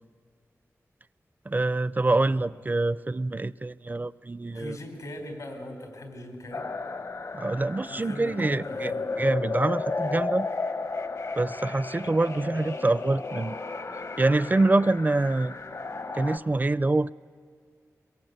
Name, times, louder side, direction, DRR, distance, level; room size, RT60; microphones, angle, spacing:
voice 1, 1.5-4.8 7.3-8.9 9.2-10.5 11.4-13.6 14.2-15.6 16.1-17.1, right 2 dB, 30° right, 18 dB, 0.5 m, -25 dB
voice 2, 2.0-2.4 4.5-6.7 7.9-9.1, left 1 dB, 85° left, 4 dB, 3.9 m, -40 dB
sound 1, 6.5-16.4, left 3 dB, 65° left, 1.3 m, -33 dB
23.0 x 22.5 x 8.1 m, 2.2 s
wide cardioid pair, 65°, 6 cm